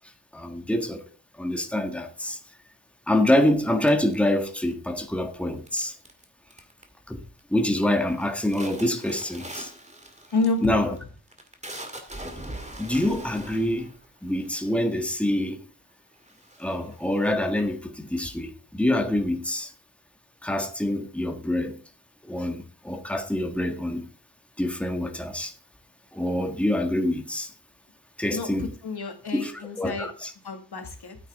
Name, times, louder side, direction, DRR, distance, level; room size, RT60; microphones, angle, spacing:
voice 1, 0.3-1.0 1.4-2.4 3.1-5.9 7.1-7.2 7.5-9.7 10.6-10.9 12.8-13.9 14.2-15.6 16.6-19.7 20.4-21.8 22.2-24.1 24.6-25.5 26.1-27.5 28.2-28.7 29.3-29.5 29.8-30.3, left 1 dB, 5° left, 1.6 m, -26 dB
sound 1, 3.8-4.9 5.7-6.2 6.5-7.0 7.4-7.8 8.1-15.2 15.8-15.9 16.2-17.8, right 1 dB, 20° right, 2.2 m, -42 dB
voice 2, 10.3-11.0 28.3-30.1 30.4-31.2, left 3 dB, 90° left, 2.2 m, -29 dB
13.5 x 8.5 x 3.6 m
wide cardioid pair, 110°, 38 cm